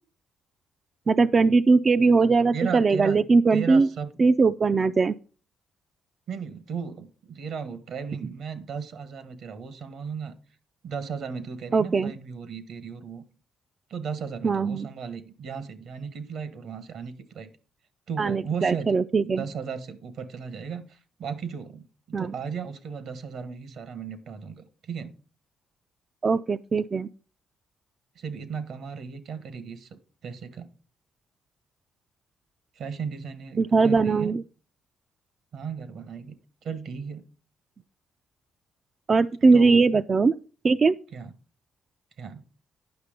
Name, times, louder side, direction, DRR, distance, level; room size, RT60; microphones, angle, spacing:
voice 1, 1.1-3.9 4.2-5.1 11.7-12.1 14.4-14.9 18.2-19.4 22.1-22.3 26.2-27.1 33.6-34.4 39.1-40.3 40.6-40.9, right 4 dB, 35° right, 11 dB, 0.3 m, -20 dB
voice 2, 2.5-3.2 3.5-4.1 6.3-10.4 10.8-13.2 13.9-17.5 18.1-19.0 19.2-25.1 28.1-30.7 32.7-34.3 35.5-36.3 36.6-37.3 39.5-40.0 41.1-41.3 42.2-42.4, right 6 dB, 70° right, 12 dB, 1.4 m, -36 dB
9.6 x 5.9 x 5.1 m, 0.37 s
cardioid pair, 90°, 0 cm